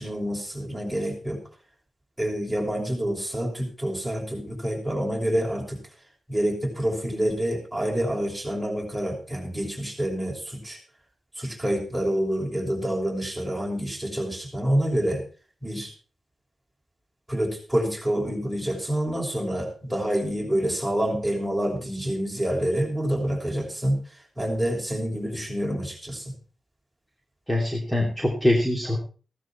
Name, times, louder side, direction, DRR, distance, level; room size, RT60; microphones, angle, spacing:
voice 1, 0.0-1.4 2.2-5.8 6.3-10.8 11.4-15.2 15.6-15.9 17.3-24.0 24.4-26.3, equal, ahead, -2 dB, 6.2 m, -27 dB
voice 2, 27.5-29.0, left 1 dB, 15° left, 0 dB, 2.9 m, -23 dB
15.5 x 12.5 x 4.4 m, 0.38 s
wide cardioid pair, 105°, 0 cm